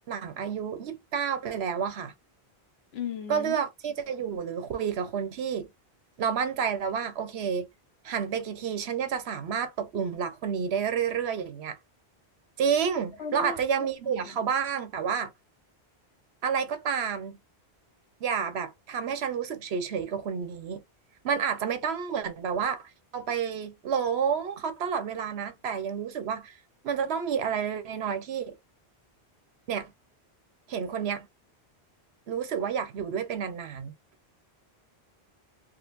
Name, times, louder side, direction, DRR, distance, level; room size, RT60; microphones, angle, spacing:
voice 1, 0.1-2.1 3.3-5.7 6.2-7.7 8.0-11.8 12.6-15.3 16.4-17.4 18.2-20.8 21.2-26.6 26.8-28.5 29.7-29.9 30.7-31.3 32.3-33.9, right 7 dB, 75° right, 1.0 m, -30 dB
voice 2, 2.9-3.6 13.2-13.9 14.2-14.4, left 7 dB, 70° left, 1.1 m, -36 dB
3.7 x 2.5 x 2.5 m
omnidirectional pair, 1.1 m